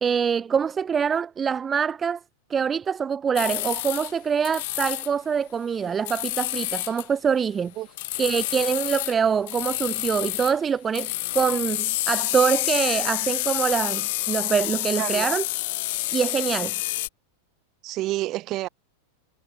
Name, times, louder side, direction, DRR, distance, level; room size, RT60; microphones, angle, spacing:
voice 1, 0.0-2.2 2.5-7.7 8.2-15.4 16.1-16.7, right 7 dB, 20° right, 0.7 m, -24 dB
sound 1, 3.4-4.1 4.4-5.1 6.1-7.1 8.0-9.2 9.5-10.6 10.9-17.1, left 20 dB, 50° left, 0.7 m, -28 dB
voice 2, 15.0-15.4 17.8-18.7, right 17 dB, 35° right, 1.7 m, -29 dB
figure-of-eight pair, 90°, 0 cm